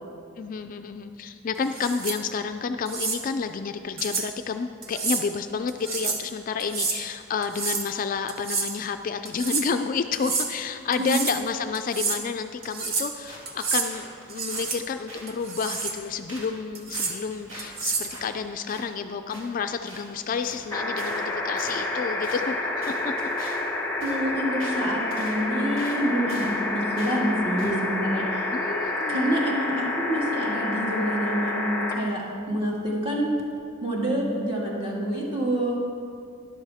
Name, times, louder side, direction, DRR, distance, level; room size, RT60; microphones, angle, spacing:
voice 1, 0.4-23.6 28.5-29.5, left 5 dB, 40° left, 8 dB, 0.3 m, -30 dB
sound 1, 1.7-2.2 2.8-3.2 4.0-4.3 4.8-5.2 5.7-6.2 6.6-7.0 7.4-7.9 8.3-8.8 9.2-9.7 10.1-10.5 10.9-11.4 11.7-12.2 12.6-13.1 13.4-13.9 14.3-14.8 15.3-16.0 16.7-17.1 17.6-18.1, right 4 dB, 50° right, 1.0 m, -29 dB
sound 2, 13.2-13.5 13.8-14.7 15.1-15.4 15.7-16.0 16.3-16.5 16.9-18.9 19.3-19.5 19.9-20.1 20.4-20.7 21.0-21.2 21.6-22.0 22.2-22.4 22.8-23.7 24.0-24.2 24.6-24.8 25.1-25.4 25.8-26.0 26.3-26.6 27.0-27.2 27.6-27.8, right 1 dB, 75° right, 2.7 m, -43 dB
sound 3, 20.7-31.9 33.4-33.5, left 2 dB, 15° left, 1.1 m, -29 dB
voice 2, 24.0-28.5 29.1-33.3 33.8-35.8, right 1 dB, 25° right, -4 dB, 2.2 m, -27 dB
13.0 x 11.0 x 3.5 m, 2.4 s
head